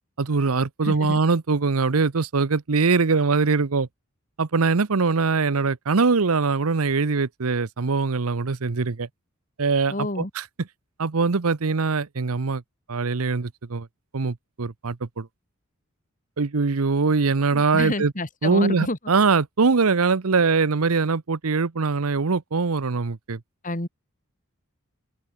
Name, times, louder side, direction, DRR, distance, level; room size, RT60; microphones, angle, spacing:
voice 1, 0.2-3.9 4.4-9.1 9.6-10.4 11.0-12.6 12.9-13.9 14.1-15.3 16.4-18.1 18.4-23.4, right 4 dB, 80° right, 0.8 m, -22 dB
voice 2, 0.8-1.2 9.9-10.3 17.5-19.0 23.6-23.9, left 1 dB, 40° left, 3.4 m, -29 dB
open air
head